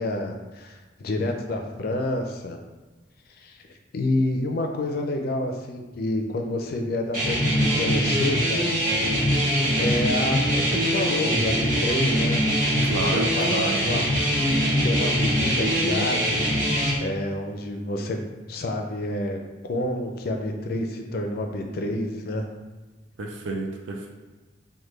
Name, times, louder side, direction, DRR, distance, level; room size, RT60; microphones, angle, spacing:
voice 1, 0.0-2.6 3.4-3.6 3.9-8.7 9.8-12.4 13.1-14.4 14.8-16.4 17.0-18.2 18.5-19.4 19.7-22.5, left 1 dB, 55° left, 3 dB, 0.4 m, -28 dB
sound 1, 7.1-16.9, equal, 50° right, 1.4 m, -23 dB
voice 2, 12.8-13.8 23.2-24.1, right 2 dB, 85° right, 2 dB, 0.5 m, -30 dB
3.3 x 2.1 x 3.1 m, 1.2 s
head